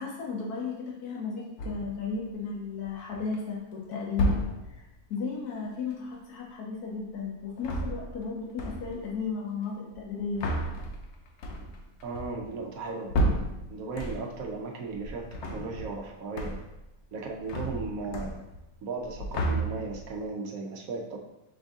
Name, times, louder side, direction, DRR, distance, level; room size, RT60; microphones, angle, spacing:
voice 1, 0.0-4.4 4.7-10.5, left 5 dB, 75° left, -2 dB, 1.4 m, -34 dB
sound 1, 1.6-2.1 2.8-3.4 4.1-4.9 7.5-8.3 8.6-9.1 9.9-14.5 14.9-16.1 16.4-16.9 17.1-18.7 19.0-20.1, right 1 dB, 60° left, 0.8 m, -32 dB
voice 2, 12.0-13.1 13.7-16.6 17.1-18.4 18.8-21.2, right 3 dB, 70° right, 2 dB, 1.0 m, -36 dB
5.2 x 2.6 x 3.5 m, 0.89 s
omnidirectional pair, 1.6 m